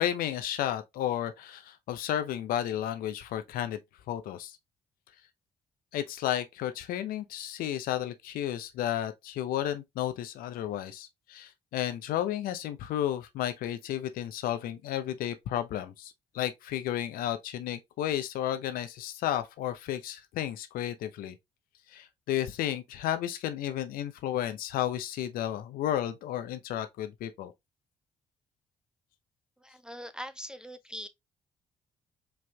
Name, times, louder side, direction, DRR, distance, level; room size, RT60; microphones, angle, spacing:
voice 1, 0.0-3.8 4.1-4.5 5.9-21.3 21.9-27.5, left 11 dB, 65° left, 0.6 m, -32 dB
voice 2, 29.6-31.1, equal, 5° right, 0.4 m, -42 dB
4.9 x 3.4 x 2.2 m
hypercardioid pair, 45°, 16 cm